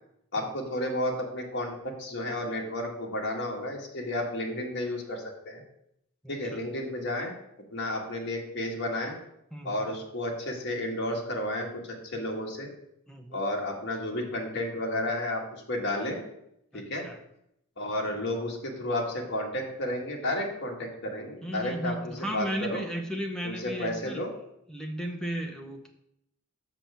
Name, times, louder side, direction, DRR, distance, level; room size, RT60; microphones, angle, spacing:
voice 1, 0.3-5.6 6.3-7.3 7.7-9.2 9.6-12.7 13.3-15.4 15.7-16.2 16.7-17.1 17.8-22.8 23.4-24.3, left 1 dB, 55° left, -1 dB, 1.8 m, -32 dB
voice 2, 9.5-9.9 13.1-13.4 16.7-17.2 21.4-24.2 24.7-25.9, equal, 5° left, 2 dB, 0.9 m, -35 dB
6.0 x 6.0 x 6.9 m, 0.79 s
head